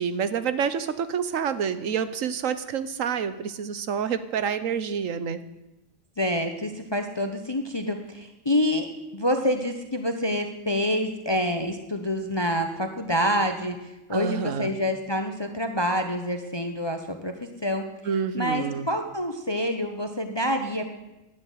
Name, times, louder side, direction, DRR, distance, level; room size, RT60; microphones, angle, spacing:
voice 1, 0.0-5.4 14.1-14.7 18.0-18.9, right 7 dB, 90° right, 13 dB, 1.3 m, -28 dB
voice 2, 6.2-8.9 9.1-17.3 17.6-17.8 18.3-20.9, equal, 20° left, 6 dB, 1.0 m, -27 dB
11.5 x 8.8 x 9.4 m, 0.97 s
omnidirectional pair, 1.3 m